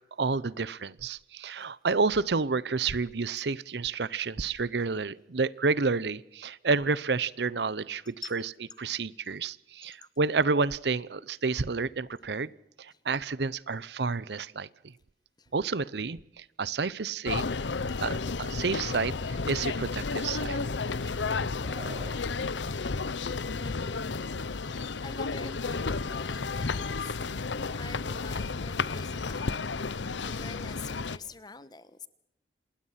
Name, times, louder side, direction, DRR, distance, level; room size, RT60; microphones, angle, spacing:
voice 1, 0.2-8.4 8.8-12.5 12.8-14.9 15.5-17.4 18.0-20.6, right 4 dB, 70° right, 20 dB, 0.7 m, -30 dB
sound 1, 17.3-31.2, left 4 dB, 90° left, 0.8 m, -32 dB
Screaming, 21.6-22.2 23.7-23.9, right 1 dB, 20° right, 4.7 m, -46 dB
voice 2, 23.6-24.0 24.5-27.4 27.8-29.6 30.2-32.1, left 4 dB, 25° left, 14 dB, 1.2 m, -46 dB
27.5 x 20.0 x 5.8 m, 0.83 s
head